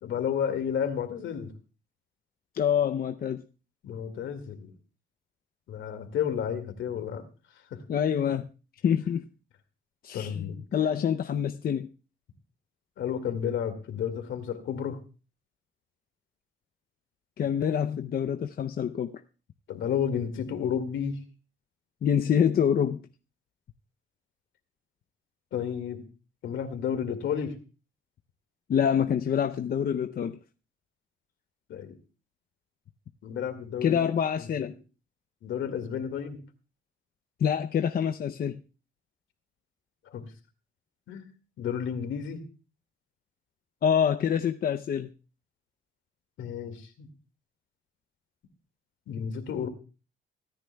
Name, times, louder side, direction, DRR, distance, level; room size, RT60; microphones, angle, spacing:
voice 1, 0.0-1.5 3.8-4.7 5.7-7.2 7.7-7.8 10.1-10.6 13.0-15.0 19.7-21.2 25.5-26.1 26.4-27.5 31.7-32.0 33.2-34.0 34.4-34.7 35.4-36.4 40.1-40.3 41.1-41.3 41.6-42.4 46.4-47.1 49.1-49.7, left 8 dB, 75° left, 2.1 m, -31 dB
voice 2, 2.5-3.4 7.9-8.5 8.8-9.2 10.0-10.4 10.7-11.9 17.4-19.2 22.0-23.1 28.7-30.4 33.8-34.7 37.4-38.6 43.8-45.1, left 8 dB, 50° left, 0.6 m, -26 dB
24.5 x 9.8 x 2.3 m
cardioid pair, 90°, 20 cm